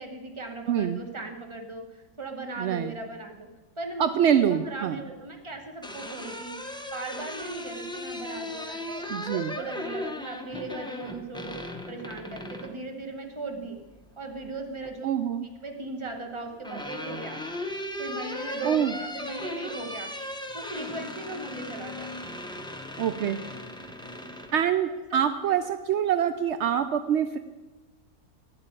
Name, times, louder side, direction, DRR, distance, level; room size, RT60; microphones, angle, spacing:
voice 1, 0.0-3.5 3.8-11.6 11.9-13.8 14.2-15.1 15.6-17.4 18.0-20.1 20.5-22.1 25.1-25.2 25.5-25.6, right 2 dB, 20° right, 4 dB, 1.2 m, -38 dB
voice 2, 0.7-1.0 2.6-2.9 4.0-5.0 9.1-9.5 15.0-15.5 18.6-18.9 23.0-23.4 24.5-27.4, right 9 dB, 75° right, 10 dB, 0.6 m, -25 dB
sound 1, 5.5-12.8 14.2-14.9 16.2-24.7, left 1 dB, 5° left, 0.5 m, -37 dB
8.8 x 8.4 x 8.8 m, 1.1 s
omnidirectional pair, 1.7 m